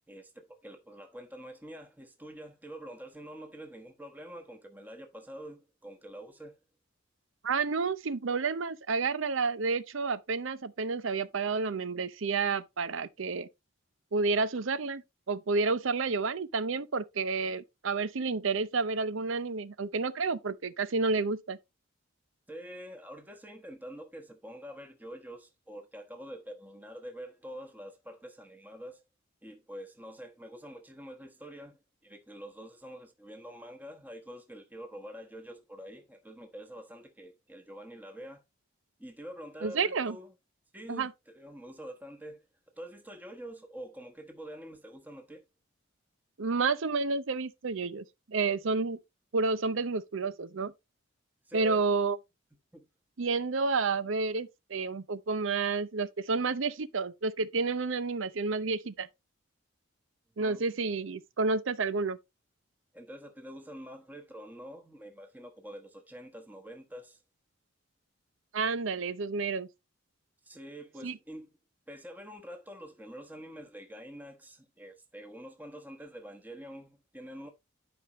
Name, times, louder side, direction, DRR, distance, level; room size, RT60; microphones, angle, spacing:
voice 1, 0.1-6.6 22.5-29.0 29.4-38.4 39.0-40.3 40.7-42.4 42.7-45.4 51.4-51.8 52.7-52.9 60.3-60.6 62.9-67.2 70.4-71.6 71.9-77.5, equal, 10° right, 1.1 m, -46 dB
voice 2, 7.4-13.5 14.1-15.0 15.3-21.6 39.6-40.2 40.9-41.1 46.4-49.0 49.3-50.7 51.5-52.2 53.2-59.1 60.4-62.2 68.5-69.7 71.0-71.2, right 4 dB, 70° right, 0.6 m, -30 dB
11.5 x 5.1 x 3.0 m
head